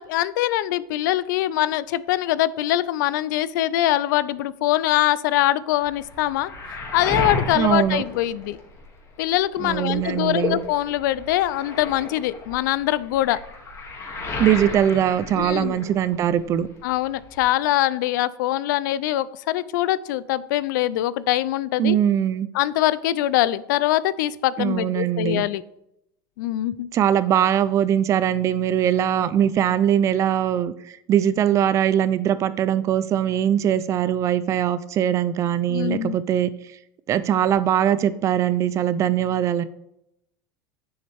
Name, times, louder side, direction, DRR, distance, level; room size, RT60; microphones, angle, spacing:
voice 1, 0.0-6.5 6.9-8.6 9.2-13.4 15.4-15.7 16.8-22.0 22.5-25.6 26.4-26.9 35.7-36.2, left 14 dB, 90° left, 18 dB, 0.5 m, -23 dB
Waves surf, 5.8-9.0 9.4-16.3 16.5-17.5, left 2 dB, 25° left, 2.2 m, -33 dB
voice 2, 7.5-8.0 9.6-10.6 14.4-16.7 21.8-22.5 24.6-25.4 26.9-30.7 31.1-36.5 37.1-39.6, right 10 dB, 30° right, 15 dB, 0.4 m, -21 dB
9.4 x 7.1 x 3.4 m, 0.82 s
supercardioid pair, 150°, 10 cm